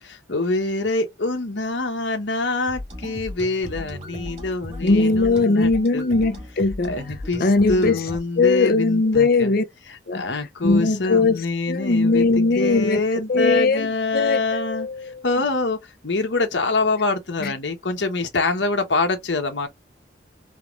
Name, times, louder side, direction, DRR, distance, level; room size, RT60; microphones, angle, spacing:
voice 1, 0.0-6.0 6.8-9.5 9.9-19.7, left 3 dB, 80° left, 1.1 m, -25 dB
sound 1, 2.7-8.2, left 1 dB, 40° right, 1.7 m, -36 dB
voice 2, 4.8-6.9 7.4-8.0 8.4-9.6 10.1-10.2 10.6-13.0 13.3-15.1 17.4-17.5, left 3 dB, 55° left, 0.6 m, -20 dB
4.1 x 3.2 x 2.5 m
head